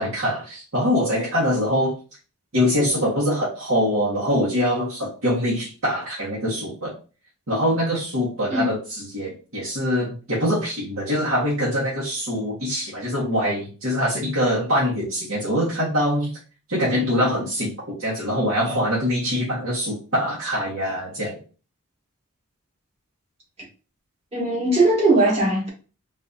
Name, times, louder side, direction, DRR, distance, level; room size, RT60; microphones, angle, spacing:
voice 1, 0.0-1.9 2.5-6.9 7.5-16.3 16.7-21.4, equal, 65° right, 1.5 m, -23 dB
voice 2, 24.3-25.7, right 2 dB, 30° right, 1.5 m, -19 dB
4.1 x 2.6 x 2.6 m
head